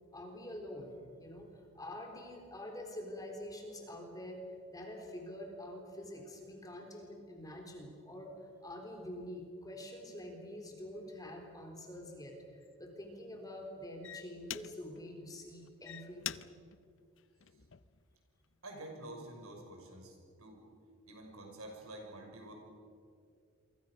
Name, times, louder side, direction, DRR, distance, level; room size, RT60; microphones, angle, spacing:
voice 1, 0.1-4.4 4.7-8.3 8.6-16.4, left 1 dB, 15° left, 2 dB, 3.6 m, -46 dB
sound 1, 11.8-12.0 12.6-12.9 13.6-13.7 14.0-15.1 15.6-18.0 18.6-18.9, left 11 dB, 60° left, 0.6 m, -45 dB
voice 2, 18.6-20.6 21.1-22.5, right 1 dB, 85° right, 1 dB, 6.3 m, -48 dB
28.0 x 23.5 x 6.6 m, 2.3 s
head